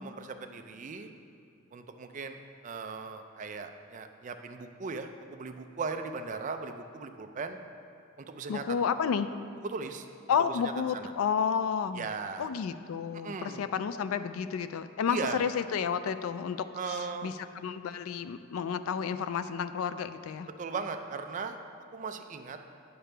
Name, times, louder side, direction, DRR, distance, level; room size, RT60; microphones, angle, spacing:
voice 1, 0.0-1.1 1.7-7.6 8.2-8.6 9.6-10.1 10.5-11.1 11.9-12.5 13.1-13.7 15.1-15.4 16.7-17.3 20.6-21.6 21.9-22.6, right 4 dB, 35° right, 6 dB, 0.4 m, -38 dB
voice 2, 8.5-9.3 10.3-12.1 12.4-16.7 17.2-20.5, left 7 dB, 85° left, 12 dB, 0.3 m, -31 dB
8.9 x 6.7 x 3.3 m, 2.4 s
head